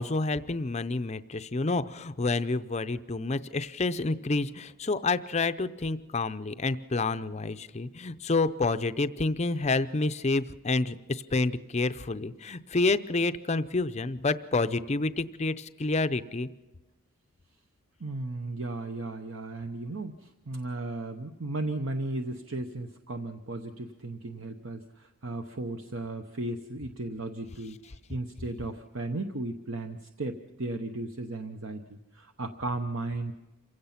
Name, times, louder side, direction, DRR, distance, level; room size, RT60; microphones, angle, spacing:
voice 1, 0.0-16.5, left 3 dB, 30° left, 12 dB, 0.5 m, -29 dB
voice 2, 18.0-33.3, right 2 dB, 60° right, 6 dB, 0.9 m, -35 dB
27.0 x 16.5 x 5.8 m, 1.1 s
head